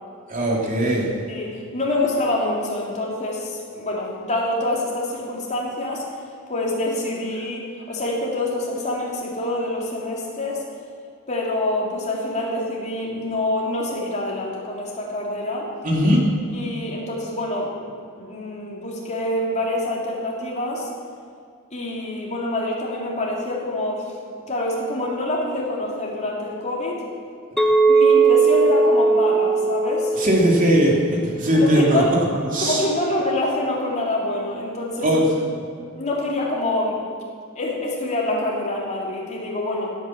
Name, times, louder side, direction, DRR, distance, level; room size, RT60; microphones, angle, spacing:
voice 1, 0.3-1.1 15.8-16.2 30.1-32.0 32.5-32.8 35.0-35.4, equal, 40° right, -1 dB, 2.9 m, -19 dB
voice 2, 1.3-6.0 6.5-10.6 11.3-15.7 16.5-17.9 18.2-20.9 21.7-24.2 24.5-27.0 27.9-30.2 31.5-32.1 32.4-35.2 35.9-37.0 37.5-39.9, left 1 dB, 35° left, -3 dB, 3.3 m, -26 dB
Chink clink, 27.6-31.8, right 4 dB, ahead, 1.3 m, -19 dB
16.5 x 9.3 x 7.4 m, 2.3 s
head